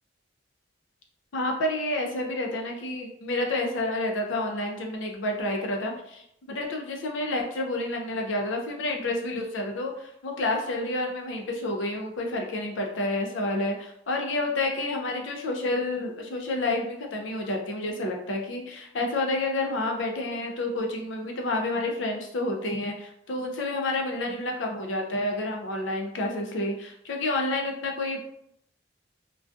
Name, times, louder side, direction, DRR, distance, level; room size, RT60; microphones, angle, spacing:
voice 1, 1.3-28.2, left 2 dB, 80° left, 2 dB, 0.5 m, -29 dB
2.3 x 2.3 x 2.5 m, 0.75 s
head